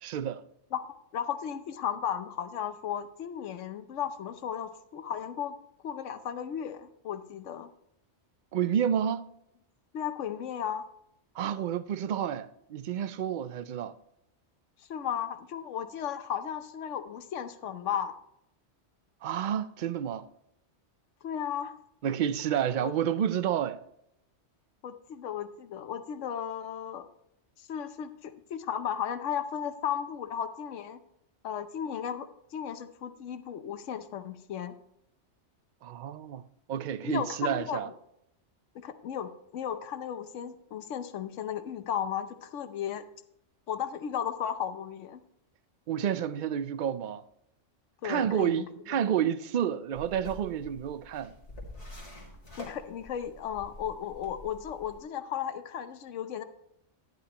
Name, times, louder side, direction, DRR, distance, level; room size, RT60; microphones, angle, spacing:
voice 1, 0.0-0.4 8.5-9.3 11.4-13.9 19.2-20.3 22.0-23.8 35.8-36.4 36.7-37.9 45.9-47.2 48.0-51.3, right 9 dB, 60° right, 0.5 m, -30 dB
voice 2, 1.1-5.5 5.8-7.7 9.9-10.8 14.9-18.2 21.2-21.8 24.8-27.1 27.7-31.0 31.4-32.3 32.5-34.7 37.0-37.8 38.7-43.1 43.7-45.2 48.0-48.7 52.6-56.4, left 9 dB, 90° left, 1.1 m, -35 dB
sound 1, 49.9-55.0, left 1 dB, 30° left, 2.3 m, -47 dB
11.5 x 10.0 x 2.9 m
omnidirectional pair, 1.2 m